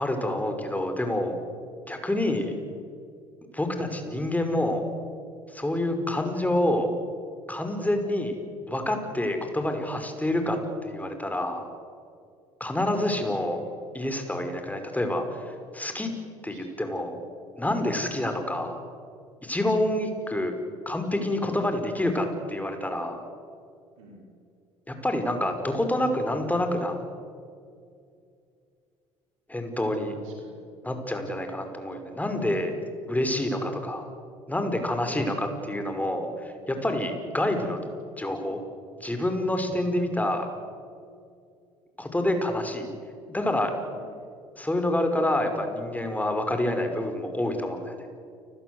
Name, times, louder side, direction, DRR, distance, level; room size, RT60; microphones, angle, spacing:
voice 1, 0.0-1.4 1.9-2.5 3.5-4.9 5.5-6.9 7.5-8.4 8.7-11.7 12.6-13.6 13.9-16.1 16.4-17.2 17.6-18.8 19.4-20.5 20.9-23.3 24.9-27.0 29.5-30.2 30.8-32.7 33.1-34.1 34.5-37.8 38.2-38.6 39.0-40.5 42.0-42.9 43.3-43.7 44.6-48.0, left 1 dB, 10° left, 6 dB, 5.6 m, -27 dB
voice 2, 13.0-13.7 16.5-16.8 24.0-24.3 29.9-30.6 35.5-35.9 43.9-44.2, right 1 dB, 80° right, -1 dB, 5.5 m, -51 dB
29.5 x 20.5 x 8.1 m, 2.4 s
hypercardioid pair, 60°, 16 cm